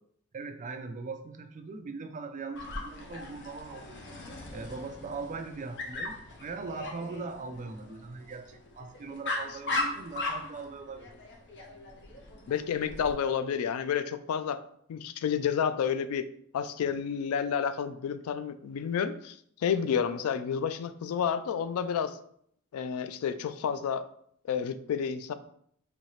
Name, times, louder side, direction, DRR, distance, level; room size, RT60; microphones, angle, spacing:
voice 1, 0.3-4.0 4.5-11.1, right 4 dB, 35° right, 7 dB, 0.4 m, -40 dB
Dog, 2.5-13.1, left 2 dB, 55° left, 0.8 m, -38 dB
voice 2, 12.5-14.6 14.9-16.3 16.5-19.4 19.6-22.2 22.7-24.0 24.5-25.3, left 7 dB, 75° left, 12 dB, 0.3 m, -30 dB
4.2 x 2.7 x 3.0 m, 0.65 s
head